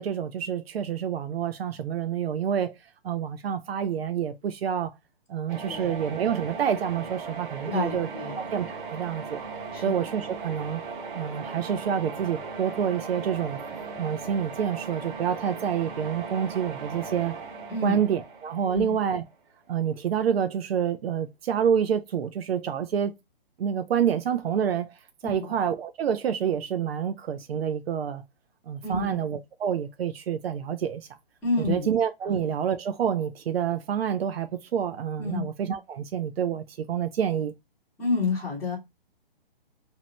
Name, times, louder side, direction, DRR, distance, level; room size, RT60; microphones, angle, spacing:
voice 1, 0.0-2.8 3.0-4.9 5.3-8.1 8.4-9.4 9.8-10.8 11.1-13.6 14.0-17.4 17.8-19.2 19.7-23.1 23.6-25.0 25.2-28.2 28.7-31.1 31.7-37.5, right 8 dB, 85° right, 0.5 m, -28 dB
sound 1, 5.5-19.3, right 5 dB, 60° right, 0.9 m, -38 dB
voice 2, 7.7-8.4 9.7-9.8 17.7-18.0 18.6-18.8 25.2-25.5 28.8-29.2 31.4-31.9 32.3-32.4 35.2-35.4 38.0-38.8, left 4 dB, 5° left, 0.4 m, -29 dB
2.8 x 2.1 x 2.7 m
hypercardioid pair, 155°, 30 cm